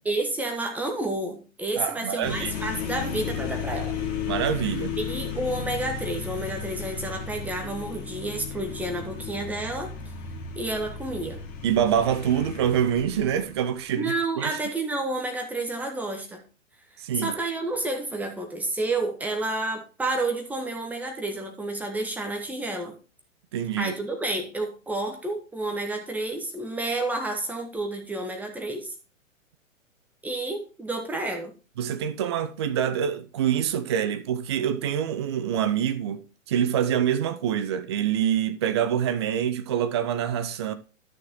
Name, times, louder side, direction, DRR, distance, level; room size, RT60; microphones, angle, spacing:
voice 1, 0.0-4.0 5.0-9.9 10.5-11.4 13.9-16.4 17.1-23.0 23.8-28.9 30.2-31.5, right 2 dB, 5° right, 1.3 m, -30 dB
voice 2, 1.8-2.5 4.2-5.0 11.6-14.6 17.0-17.3 23.5-23.9 31.8-36.2 36.5-40.7, right 9 dB, 20° right, 0.4 m, -26 dB
sound 1, 2.2-13.9, left 7 dB, 35° left, 3.6 m, -34 dB
13.0 x 6.4 x 3.1 m
figure-of-eight pair, 110°, 39 cm